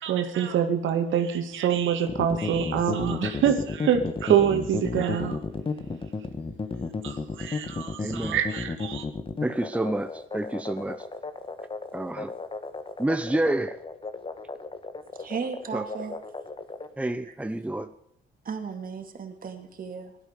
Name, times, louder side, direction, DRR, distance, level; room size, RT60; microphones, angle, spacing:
voice 1, 0.0-5.4 7.0-9.0, right 9 dB, 75° right, 6 dB, 1.9 m, -25 dB
sound 1, 2.1-16.9, left 4 dB, 25° left, 1.6 m, -33 dB
voice 2, 8.0-8.4 9.4-11.0 11.9-12.3 13.0-13.8 15.7-15.8 17.0-17.9, right 1 dB, 5° right, 9 dB, 0.8 m, -28 dB
voice 3, 15.2-16.2 17.2-17.3 18.4-20.2, right 6 dB, 45° right, 5 dB, 2.7 m, -35 dB
16.0 x 12.5 x 6.8 m, 0.74 s
cardioid pair, 90°, 20 cm